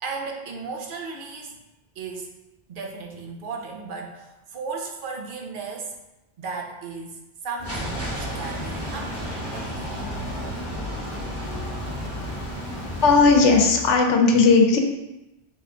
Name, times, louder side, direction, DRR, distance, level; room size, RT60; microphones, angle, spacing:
voice 1, 0.0-1.6 2.0-2.4 2.7-6.0 6.4-10.0, right 4 dB, 55° right, 1 dB, 0.7 m, -35 dB
sound 1, 7.6-13.9, left 2 dB, 60° left, 0.5 m, -37 dB
sound 2, 7.6-13.2, right 1 dB, 15° right, 0.9 m, -33 dB
voice 2, 13.0-14.8, left 4 dB, 90° left, 3 dB, 0.9 m, -16 dB
3.4 x 3.0 x 3.7 m, 0.98 s
omnidirectional pair, 1.2 m